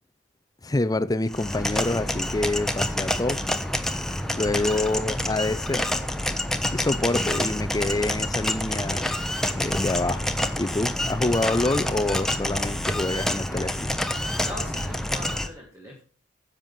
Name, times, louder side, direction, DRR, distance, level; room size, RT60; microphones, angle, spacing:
voice 1, 0.6-3.4 4.3-6.0 6.7-9.2 9.5-10.3 10.6-13.9, left 2 dB, 20° left, 0.6 m, -26 dB
sound 1, 1.3-15.5, left 1 dB, 5° left, 0.9 m, -28 dB
voice 2, 4.5-4.9 14.4-16.0, equal, 15° right, 2.1 m, -40 dB
10.5 x 7.5 x 5.5 m
head